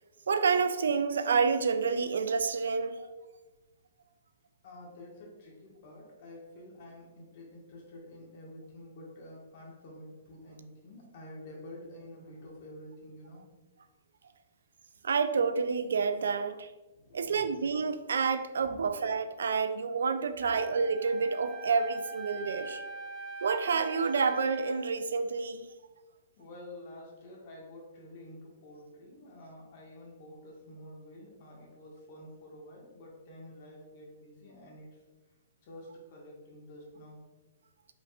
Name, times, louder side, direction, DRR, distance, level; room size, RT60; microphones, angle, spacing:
voice 1, 0.3-3.1 15.0-16.7 17.1-22.8 23.4-25.6, right 5 dB, 85° right, 10 dB, 0.3 m, -29 dB
voice 2, 4.6-13.5 16.9-17.5 18.7-18.9 20.4-20.6 26.4-34.9 35.6-37.2, left 1 dB, 55° left, -2 dB, 1.4 m, -49 dB
Wind instrument woodwind instrument, 20.4-24.9, right 2 dB, 10° left, 0.8 m, -42 dB
5.1 x 3.5 x 2.4 m, 1.2 s
hypercardioid pair, 140°, 0 cm